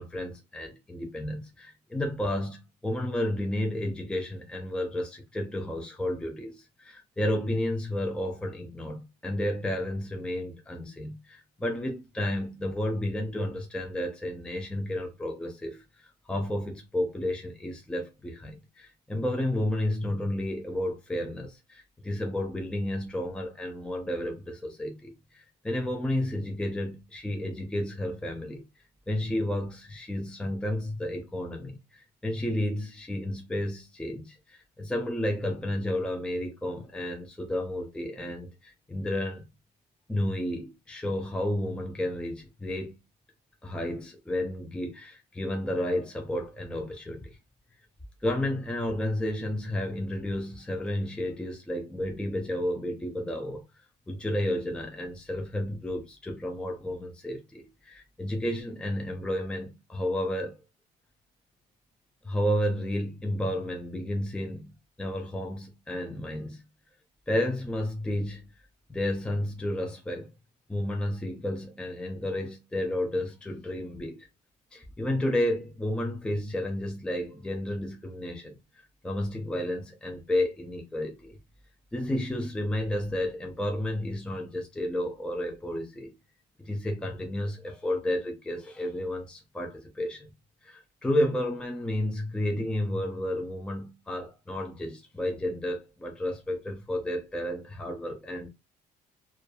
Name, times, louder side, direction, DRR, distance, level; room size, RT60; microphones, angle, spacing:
voice 1, 0.0-28.6 29.1-39.4 40.1-43.0 43.6-47.4 48.2-53.6 54.1-60.6 62.2-64.7 65.0-66.6 67.3-68.4 68.9-70.3 70.7-74.3 74.7-78.6 79.0-81.3 81.9-86.1 86.6-90.3 90.6-98.5, left 1 dB, 5° left, 0.5 m, -32 dB
2.6 x 2.3 x 2.2 m
cardioid pair, 110°, 17 cm